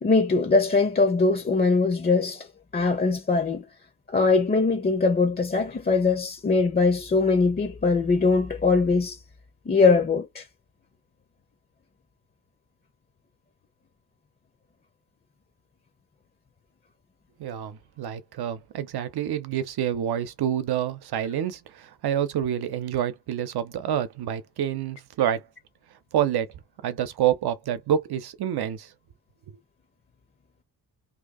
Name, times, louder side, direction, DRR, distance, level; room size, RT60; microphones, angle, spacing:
voice 1, 0.0-2.5 2.7-3.6 4.1-9.2 9.7-10.4, left 4 dB, 25° left, 0.5 m, -21 dB
voice 2, 17.4-25.4 26.1-26.5 26.8-28.9, right 10 dB, 80° right, 0.7 m, -27 dB
2.8 x 2.6 x 3.7 m
wide cardioid pair, 135°, 37 cm